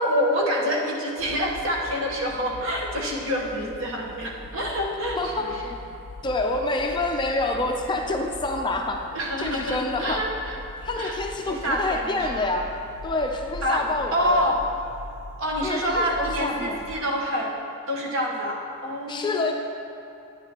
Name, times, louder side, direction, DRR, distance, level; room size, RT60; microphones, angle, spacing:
voice 1, 0.0-5.7 9.1-10.6 11.0-11.2 11.5-12.5 13.6-14.6 15.4-17.5 17.9-19.5, equal, 65° right, -1 dB, 1.1 m, -27 dB
sound 1, 1.2-16.9, left 2 dB, 75° left, 0.6 m, -42 dB
voice 2, 5.2-5.5 6.2-9.1 9.4-10.3 10.8-12.7 13.0-14.4 15.6-16.8 19.1-19.5, left 2 dB, 20° left, 2 dB, 0.4 m, -27 dB
9.8 x 9.0 x 2.9 m, 2.7 s
head